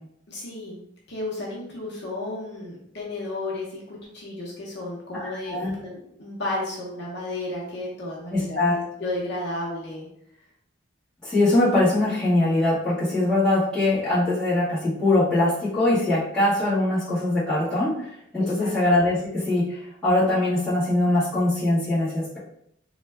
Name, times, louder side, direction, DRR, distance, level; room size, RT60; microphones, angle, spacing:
voice 1, 0.3-0.8 1.1-10.1 18.4-18.7, left 2 dB, 55° left, -4 dB, 0.8 m, -33 dB
voice 2, 5.1-5.7 8.3-8.8 11.2-22.4, left 2 dB, 5° left, -12 dB, 1.5 m, -22 dB
3.1 x 2.3 x 3.3 m, 0.74 s
head